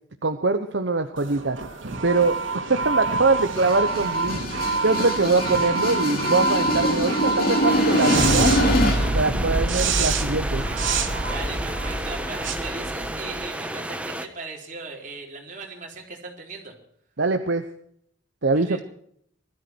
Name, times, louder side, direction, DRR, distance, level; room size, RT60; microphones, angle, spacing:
voice 1, 0.2-1.6 2.0-8.8 9.1-10.6 17.2-17.6 18.4-18.8, right 3 dB, 65° right, 7 dB, 0.9 m, -23 dB
sound 1, 1.2-13.5, right 3 dB, 80° right, 2.6 m, -26 dB
sound 2, 3.4-9.2, left 1 dB, 50° left, 3.1 m, -24 dB
sound 3, 7.7-14.3, right 1 dB, 5° right, 1.1 m, -32 dB
voice 2, 11.3-16.7 18.5-18.8, right 3 dB, 40° right, 0 dB, 4.0 m, -38 dB
20.5 x 13.5 x 4.6 m, 0.67 s
head